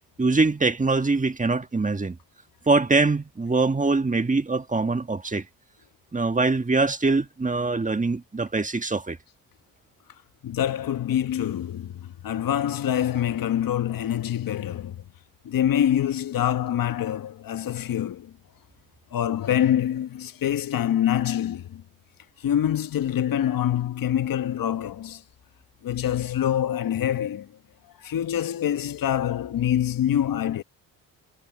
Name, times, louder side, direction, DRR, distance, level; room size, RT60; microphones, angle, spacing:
voice 1, 0.2-2.2 2.7-5.4 6.1-9.2, right 3 dB, 20° right, 1.8 m, -23 dB
voice 2, 10.4-15.0 15.4-18.4 19.1-21.8 22.4-25.2 25.8-27.6 28.0-30.6, left 10 dB, 55° left, 1.3 m, -25 dB
supercardioid pair, 70°, 41 cm